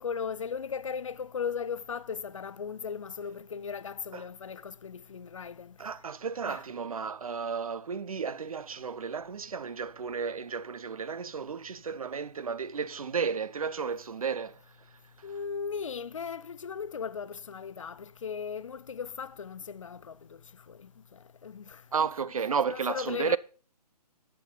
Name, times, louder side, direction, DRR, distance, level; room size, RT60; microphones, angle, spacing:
voice 1, 0.0-5.8 6.4-6.6 15.2-21.8 22.7-23.4, left 6 dB, 50° left, 0.5 m, -37 dB
voice 2, 5.8-14.6 21.9-23.4, right 6 dB, 60° right, 0.5 m, -33 dB
10.0 x 8.4 x 3.8 m
figure-of-eight pair, 140°, 21 cm